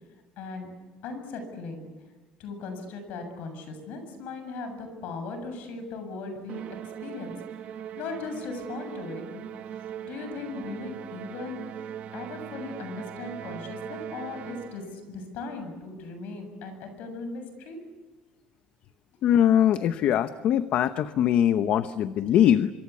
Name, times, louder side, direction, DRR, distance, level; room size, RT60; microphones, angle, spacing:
voice 1, 0.4-0.7 1.0-1.9 2.4-6.6 7.0-7.3 8.0-9.4 10.0-11.6 12.1-17.8, left 3 dB, 75° left, 7 dB, 7.6 m, -38 dB
Musical instrument, 6.5-15.0, right 9 dB, 50° right, 1.3 m, -40 dB
voice 2, 19.2-22.7, left 10 dB, 55° left, 11 dB, 0.9 m, -22 dB
26.0 x 24.0 x 8.4 m, 1.3 s
cardioid pair, 145°, 3 cm